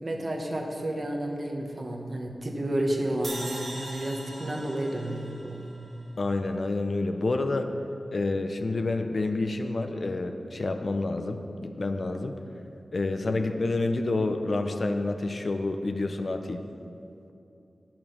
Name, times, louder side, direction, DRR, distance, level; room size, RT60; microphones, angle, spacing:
voice 1, 0.0-5.6, right 1 dB, 40° right, 1 dB, 1.2 m, -31 dB
sound 1, 3.2-6.5, right 1 dB, 55° right, 1.4 m, -41 dB
voice 2, 6.2-7.7 8.1-12.4 12.9-16.6, left 2 dB, 55° left, 6 dB, 0.6 m, -28 dB
8.8 x 6.0 x 6.3 m, 2.7 s
wide cardioid pair, 70°, 0 cm